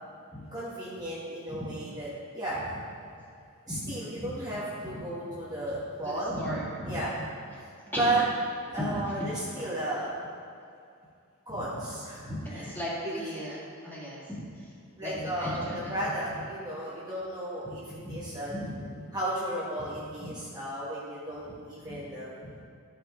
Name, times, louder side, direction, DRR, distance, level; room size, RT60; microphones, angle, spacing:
voice 1, 0.5-2.1 2.3-2.8 3.7-6.4 6.9-7.1 8.0-8.2 8.7-10.1 11.5-12.2 12.5-12.7 15.0-17.8 18.1-18.5 19.1-22.3, right 1 dB, 20° right, -9 dB, 1.4 m, -33 dB
voice 2, 3.7-5.0 6.0-7.6 7.9-8.1 8.7-9.7 11.5-11.8 12.1-14.7 15.0-15.9 18.0-19.1 19.8-19.9 20.2-20.3 21.8-22.0 22.4-22.5, equal, 10° left, -8 dB, 2.3 m, -37 dB
12.5 x 5.9 x 3.7 m, 2.4 s
head